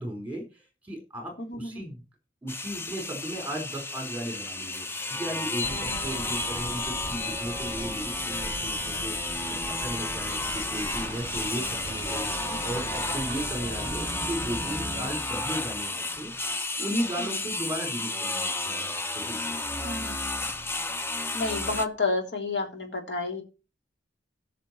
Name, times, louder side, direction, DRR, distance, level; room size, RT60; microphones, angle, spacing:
voice 1, 0.0-2.0 2.4-16.3 16.8-19.6, right 1 dB, 10° right, 3 dB, 4.2 m, -36 dB
voice 2, 1.4-1.8 5.6-6.0 12.4-12.8 17.2-17.3 19.8-20.2 21.3-23.4, left 3 dB, 65° left, 2 dB, 3.5 m, -31 dB
sound 1, 2.5-21.9, left 2 dB, 15° left, 0.7 m, -32 dB
sound 2, 5.6-15.1, right 2 dB, 30° right, 0.8 m, -39 dB
17.5 x 6.1 x 4.4 m, 0.31 s
head